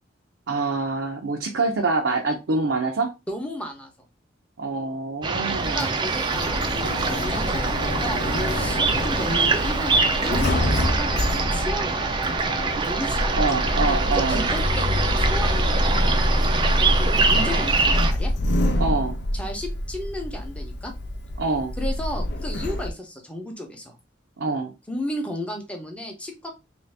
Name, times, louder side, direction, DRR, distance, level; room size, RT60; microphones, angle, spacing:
voice 1, 0.5-3.1 4.6-5.9 13.4-14.4 18.8-19.2 21.4-21.7 24.4-24.7, right 3 dB, 75° right, 0.5 m, -25 dB
voice 2, 3.3-3.9 5.4-12.0 12.4-16.3 17.0-18.3 19.3-20.9 21.8-23.9 24.9-26.5, left 1 dB, 5° left, 0.8 m, -34 dB
sound 1, 5.2-18.1, right 4 dB, 25° right, 0.4 m, -25 dB
Sliding door, 5.5-22.9, left 1 dB, 60° left, 0.5 m, -26 dB
sound 2, 6.8-17.7, left 1 dB, 40° left, 0.9 m, -37 dB
3.1 x 2.6 x 3.3 m
head